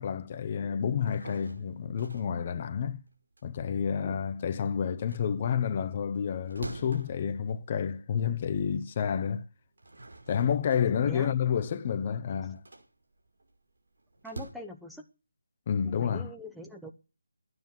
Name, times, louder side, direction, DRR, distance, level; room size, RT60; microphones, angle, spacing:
voice 1, 0.0-3.0 3.4-9.4 10.3-12.6 15.7-16.3, left 7 dB, 30° left, 0.7 m, -29 dB
sound 1, 0.9-4.5 4.9-8.4 8.8-8.9 9.5-14.5, right 2 dB, 70° right, 5.0 m, -47 dB
voice 2, 14.2-15.0 15.8-16.9, left 1 dB, ahead, 0.8 m, -43 dB
13.0 x 9.6 x 7.6 m
figure-of-eight pair, 155°, 0 cm